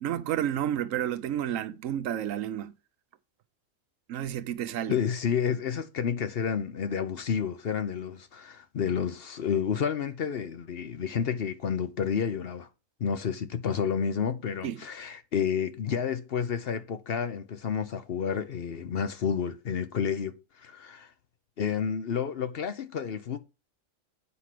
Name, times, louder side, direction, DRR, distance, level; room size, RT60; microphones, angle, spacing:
voice 1, 0.0-2.7 4.1-5.0 14.6-14.8, right 11 dB, 80° right, 1.0 m, -31 dB
voice 2, 4.9-12.7 13.0-21.1 21.6-23.4, left 7 dB, 55° left, 0.8 m, -30 dB
8.5 x 4.8 x 5.8 m
omnidirectional pair, 1.4 m